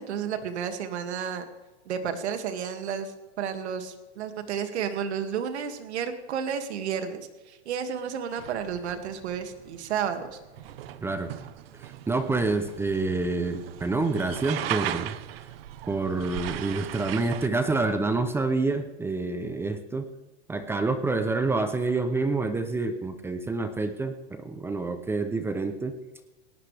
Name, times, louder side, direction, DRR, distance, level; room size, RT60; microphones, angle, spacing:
voice 1, 0.0-1.4 1.9-10.3, right 7 dB, 75° right, 7 dB, 2.3 m, -32 dB
sound 1, 8.4-17.5, right 12 dB, 60° right, 1.0 m, -38 dB
voice 2, 11.0-11.3 11.8-15.2 15.9-20.1 20.5-26.0, right 3 dB, 5° right, 9 dB, 0.6 m, -27 dB
18.5 x 18.0 x 3.4 m, 1.1 s
supercardioid pair, 150°, 33 cm